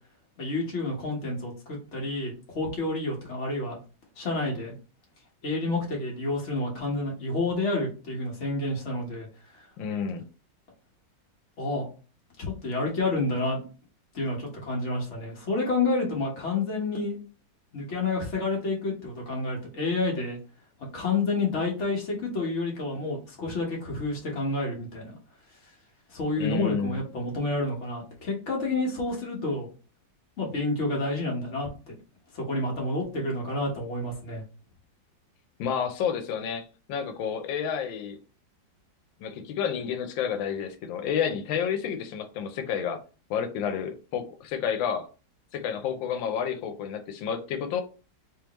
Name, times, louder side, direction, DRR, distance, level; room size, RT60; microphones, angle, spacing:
voice 1, 0.4-3.8 4.2-4.8 5.4-9.3 11.6-11.9 12.4-13.6 14.1-17.2 17.7-20.4 20.9-25.2 26.1-29.7 30.4-31.7 32.3-34.4, left 2 dB, 40° left, 1.4 m, -29 dB
voice 2, 9.8-10.3 26.4-27.0 35.6-38.2 39.2-43.0 43.3-45.1 45.5-47.8, left 7 dB, 90° left, 1.4 m, -30 dB
3.5 x 3.1 x 3.0 m
omnidirectional pair, 2.0 m